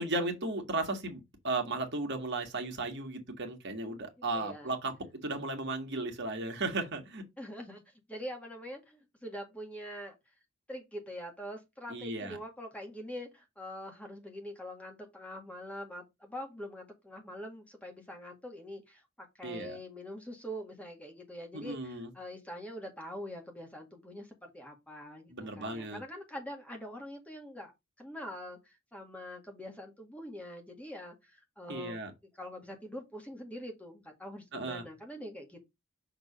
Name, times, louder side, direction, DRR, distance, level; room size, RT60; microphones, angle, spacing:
voice 1, 0.0-4.9 5.2-7.2 11.9-12.4 19.4-19.8 21.5-22.1 25.3-26.0 31.7-32.1 34.5-34.8, right 2 dB, 55° right, 1.8 m, -35 dB
voice 2, 4.3-4.7 7.4-10.2 10.7-27.7 28.0-32.0 32.3-35.6, equal, 5° left, 1.8 m, -44 dB
6.2 x 3.8 x 4.9 m
head